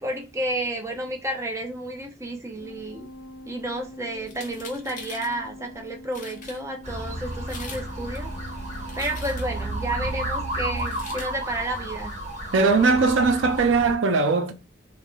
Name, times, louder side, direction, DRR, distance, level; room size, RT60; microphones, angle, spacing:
voice 1, 0.0-3.1 3.5-8.3 9.0-12.1, right 1 dB, 15° right, 0.5 m, -31 dB
sound 1, 2.6-11.5, left 1 dB, 85° left, 0.6 m, -44 dB
sound 2, 4.3-5.3 5.9-6.0 6.1-6.6 7.3-7.9 8.1-9.6 10.8-11.3, left 4 dB, 40° left, 0.8 m, -42 dB
sound 3, 6.8-14.0, right 1 dB, 40° right, 1.0 m, -32 dB
voice 2, 12.5-14.5, right 4 dB, 80° right, 0.5 m, -20 dB
3.1 x 2.0 x 2.3 m
head